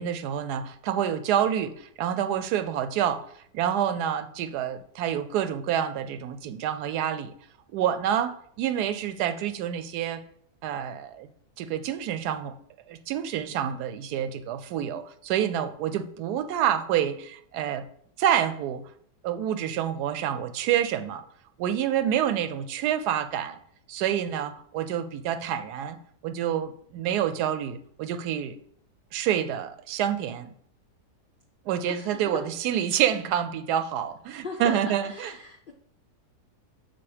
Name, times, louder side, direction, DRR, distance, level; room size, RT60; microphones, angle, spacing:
voice 1, 0.0-3.3 3.5-7.3 7.7-10.2 10.6-11.3 11.6-12.5 12.9-17.8 18.2-18.8 19.2-21.2 21.6-23.6 23.9-26.0 26.2-28.6 29.1-30.5 31.7-35.3, right 10 dB, 80° right, 10 dB, 1.1 m, -28 dB
voice 2, 31.9-32.9 34.4-35.7, left 3 dB, 75° left, 2 dB, 0.4 m, -39 dB
5.9 x 4.0 x 4.8 m, 0.66 s
omnidirectional pair, 1.7 m